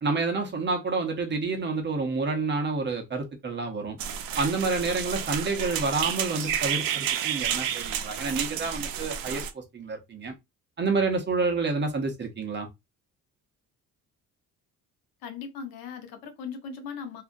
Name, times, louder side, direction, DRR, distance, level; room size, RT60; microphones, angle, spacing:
voice 1, 0.0-4.0 4.4-10.3 10.8-12.7, right 3 dB, 30° right, 0.8 m, -29 dB
sound 1, 4.0-9.5, right 9 dB, 75° right, 0.6 m, -30 dB
voice 2, 15.2-17.2, left 6 dB, 85° left, 0.8 m, -38 dB
2.7 x 2.4 x 2.5 m
cardioid pair, 115°, 35 cm